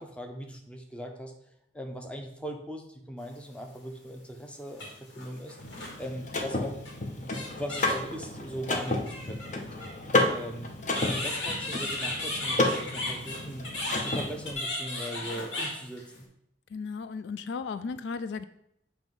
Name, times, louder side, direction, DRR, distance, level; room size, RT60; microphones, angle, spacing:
voice 1, 0.0-1.3 1.7-4.8 5.2-5.6 6.0-6.8 7.2-9.7 10.2-13.7 14.0-16.3, equal, 5° left, 3 dB, 0.7 m, -39 dB
sound 1, 3.6-3.7 4.7-6.1 6.8-7.0 7.3-8.1 8.8-9.9 10.9-16.2, left 2 dB, 90° left, 1.9 m, -35 dB
Car / Mechanisms, 5.6-14.5, left 2 dB, 40° left, 0.8 m, -31 dB
voice 2, 16.7-18.4, left 5 dB, 65° left, 12 dB, 0.3 m, -35 dB
7.6 x 3.0 x 5.2 m, 0.75 s
head